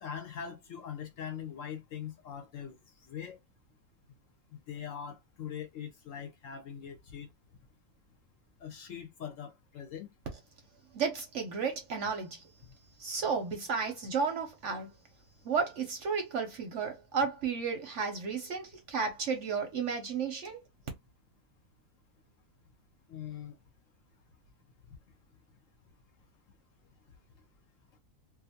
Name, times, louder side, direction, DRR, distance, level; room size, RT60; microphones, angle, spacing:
voice 1, 0.0-2.8 3.0-3.4 4.5-7.3 8.6-10.1 23.1-23.6, left 8 dB, 65° left, 0.9 m, -42 dB
voice 2, 10.9-12.4 13.0-14.9 15.4-20.6, right 5 dB, 65° right, 0.8 m, -33 dB
2.6 x 2.4 x 2.7 m
omnidirectional pair, 1.7 m